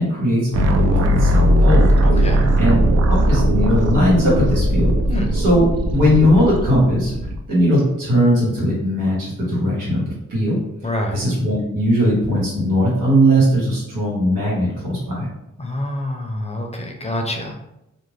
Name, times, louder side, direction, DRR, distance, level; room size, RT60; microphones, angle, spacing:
voice 1, 0.0-1.9 2.5-2.8 3.0-4.9 5.3-7.1 7.5-10.0 10.3-10.6 11.1-15.3, equal, 90° right, -6 dB, 1.2 m, -18 dB
sound 1, 0.5-7.4, equal, 55° right, 0.4 m, -18 dB
voice 2, 2.0-2.5 5.1-5.3 10.8-11.3 15.6-17.5, left 1 dB, 20° left, 2 dB, 0.6 m, -26 dB
2.5 x 2.1 x 3.2 m, 0.87 s
cardioid pair, 55°, 31 cm